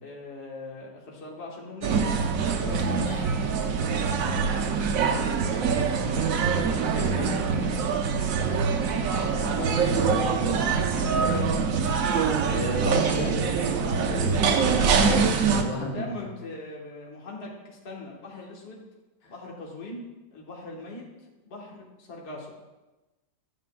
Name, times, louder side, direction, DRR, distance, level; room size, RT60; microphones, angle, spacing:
voice 1, 0.0-2.1 4.1-4.7 5.1-6.4 6.9-8.2 15.8-18.8 19.3-20.0 20.3-21.0 21.4-22.5, left 2 dB, 35° left, -2 dB, 1.4 m, -41 dB
sound 1, 1.8-15.6, right 5 dB, 75° right, 0.7 m, -24 dB
voice 2, 2.6-3.3 9.2-11.7 12.5-13.4 13.8-16.1, left 1 dB, 85° left, -1 dB, 2.0 m, -34 dB
10.5 x 6.6 x 2.3 m, 1.1 s
omnidirectional pair, 2.1 m